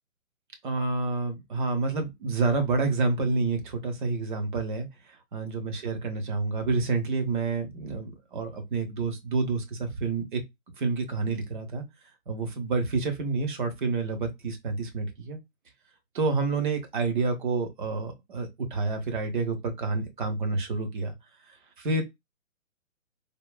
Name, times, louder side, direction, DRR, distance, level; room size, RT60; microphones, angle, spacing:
voice 1, 0.6-4.9 5.3-10.4 10.8-11.8 12.3-15.4 16.1-21.1 21.8-22.0, right 3 dB, 35° right, 0.9 m, -28 dB
3.5 x 2.3 x 2.3 m
figure-of-eight pair, 140°, 41 cm